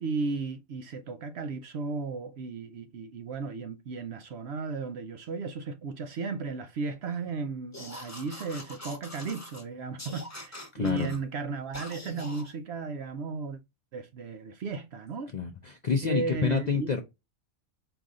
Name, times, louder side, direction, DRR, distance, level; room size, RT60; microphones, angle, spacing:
voice 1, 0.0-13.6 13.9-15.3 16.0-16.9, right 4 dB, 65° right, 0.7 m, -35 dB
sound 1, 7.7-9.6 10.0-11.2 11.7-12.5, left 1 dB, 15° left, 1.0 m, -43 dB
voice 2, 10.7-11.1 15.3-17.0, left 5 dB, 50° left, 0.5 m, -28 dB
4.9 x 2.6 x 3.6 m
omnidirectional pair, 1.4 m